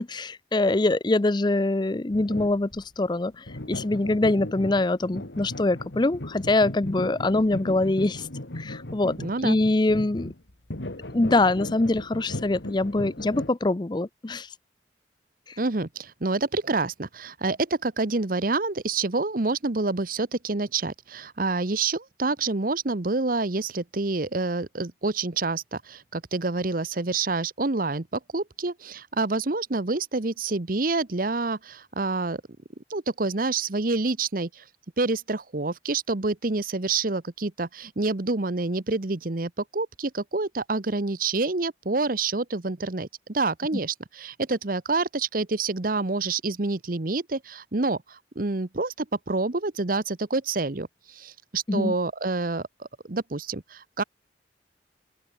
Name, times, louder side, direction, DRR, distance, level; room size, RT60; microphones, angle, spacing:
voice 1, 0.0-8.3 8.6-9.1 9.4-10.3 11.1-14.5 51.7-51.9, left 2 dB, 25° left, 0.5 m, -24 dB
sound 1, 2.1-2.8 3.5-13.5, left 1 dB, 80° left, 2.4 m, -37 dB
voice 2, 9.2-9.6 15.6-32.4 32.9-34.6 35.0-54.0, right 3 dB, 50° right, 1.1 m, -27 dB
open air
head